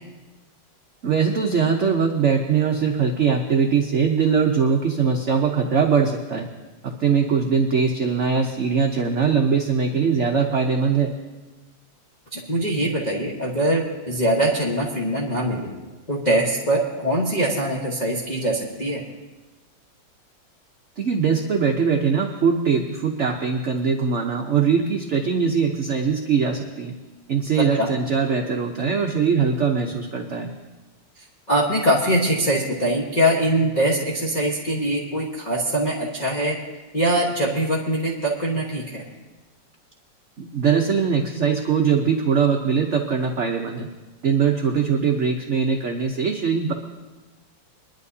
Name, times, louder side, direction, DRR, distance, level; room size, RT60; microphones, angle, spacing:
voice 1, 1.0-6.5 6.8-11.1 21.0-26.9 27.3-30.5 40.4-43.9 44.2-46.7, right 6 dB, 50° right, 2 dB, 0.9 m, -21 dB
voice 2, 12.3-15.7 16.1-19.0 27.6-27.9 31.5-36.6 36.9-39.0, right 1 dB, 25° left, -4 dB, 1.2 m, -22 dB
22.0 x 11.5 x 2.8 m, 1.2 s
omnidirectional pair, 2.0 m